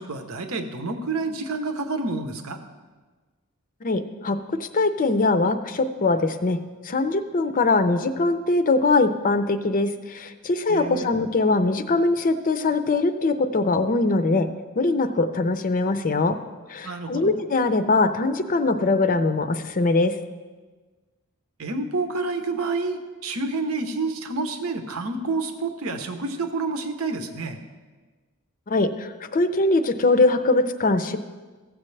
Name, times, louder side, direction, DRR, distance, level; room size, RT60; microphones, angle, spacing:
voice 1, 0.0-2.6 10.7-11.1 16.8-17.4 21.6-27.6, right 3 dB, 70° right, 7 dB, 0.8 m, -29 dB
voice 2, 3.8-6.6 6.8-14.5 14.8-16.4 16.7-20.1 28.7-31.2, left 3 dB, 40° left, 10 dB, 0.5 m, -22 dB
15.0 x 7.5 x 3.3 m, 1.3 s
head